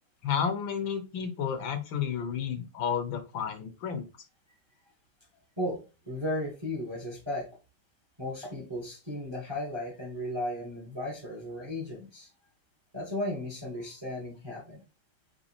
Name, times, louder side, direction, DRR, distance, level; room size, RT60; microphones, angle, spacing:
voice 1, 0.2-4.1, left 7 dB, 75° left, 6 dB, 1.6 m, -31 dB
voice 2, 5.6-7.5 8.2-12.3 12.9-14.8, left 1 dB, 15° right, -1 dB, 1.1 m, -35 dB
5.2 x 3.1 x 3.0 m, 0.29 s
omnidirectional pair, 2.2 m